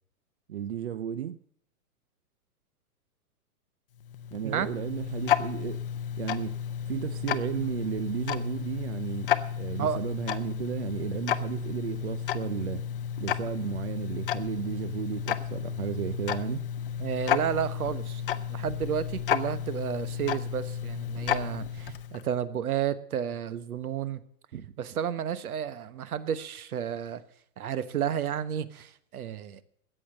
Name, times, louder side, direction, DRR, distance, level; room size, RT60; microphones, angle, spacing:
voice 1, 0.5-1.4 4.3-5.8 6.2-6.6 6.9-12.8 13.2-16.7, right 10 dB, 50° right, 0.5 m, -34 dB
Tick-tock, 4.0-22.3, left 9 dB, 40° left, 0.7 m, -32 dB
voice 2, 17.0-24.2 24.5-27.2 27.6-29.6, right 9 dB, 70° right, 1.3 m, -32 dB
14.0 x 8.8 x 7.6 m
hypercardioid pair, 170°, 45 cm